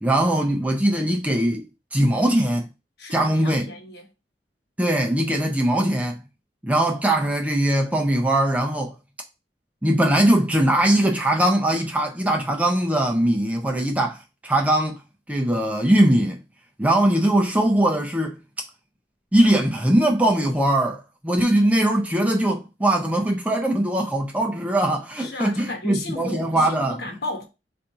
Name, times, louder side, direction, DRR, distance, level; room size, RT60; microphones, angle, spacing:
voice 1, 0.0-1.7 1.9-2.7 3.1-3.7 4.8-6.2 6.6-8.9 9.8-15.0 15.3-16.4 16.8-18.4 19.3-27.0, right 1 dB, 10° right, 0.5 m, -21 dB
voice 2, 3.0-4.1 25.2-27.4, left 2 dB, 60° left, 1.1 m, -34 dB
4.1 x 2.6 x 4.6 m
head